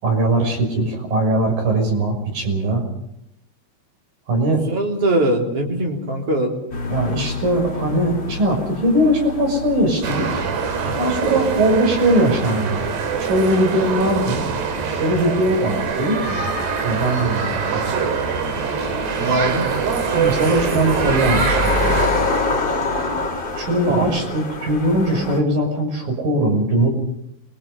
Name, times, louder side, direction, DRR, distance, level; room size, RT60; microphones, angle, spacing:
voice 1, 0.0-2.8 4.3-4.6 6.9-10.5 11.0-12.9 13.2-14.4 15.0-16.5 16.8-17.8 20.1-22.0 23.6-26.9, right 1 dB, 55° right, 3 dB, 7.7 m, -20 dB
voice 2, 4.7-6.5 10.8-11.0 19.2-19.7 23.9-24.1, right 1 dB, 35° right, 1 dB, 4.3 m, -21 dB
sound 1, 6.7-25.4, left 3 dB, 30° left, 2.9 m, -28 dB
sound 2, 10.0-22.1, right 5 dB, 75° right, 4.5 m, -24 dB
27.5 x 23.0 x 5.5 m, 0.78 s
omnidirectional pair, 4.8 m